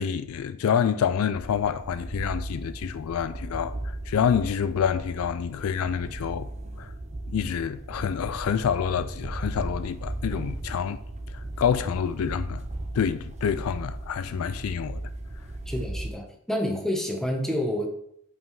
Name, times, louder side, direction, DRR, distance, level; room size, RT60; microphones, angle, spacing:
voice 1, 0.0-6.5 6.8-6.9 7.3-11.0 11.3-12.7 12.9-15.0, left 7 dB, 70° left, 0.3 m, -27 dB
sound 1, 1.3-16.1, right 1 dB, 30° right, 0.6 m, -36 dB
voice 2, 15.7-17.9, equal, ahead, 1.1 m, -28 dB
5.6 x 5.3 x 4.7 m
head